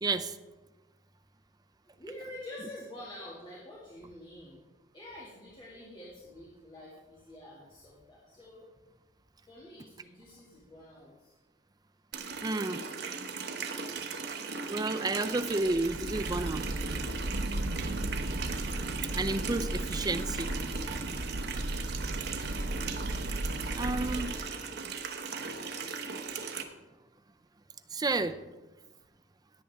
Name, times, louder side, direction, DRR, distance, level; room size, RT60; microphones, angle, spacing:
voice 1, 0.0-0.4 12.4-12.8 14.7-16.7 19.0-20.5 23.8-24.3 27.9-28.4, right 2 dB, 20° right, 9 dB, 0.5 m, -31 dB
voice 2, 1.8-4.6 4.9-8.7 9.5-11.3 13.7-14.1, left 1 dB, 25° left, -6 dB, 2.2 m, -48 dB
Water tap faucet, 12.1-26.6, right 5 dB, 65° right, 1.1 m, -38 dB
sound 1, 15.6-24.7, right 1 dB, 90° right, 0.8 m, -35 dB
16.5 x 8.6 x 3.6 m, 1.2 s
head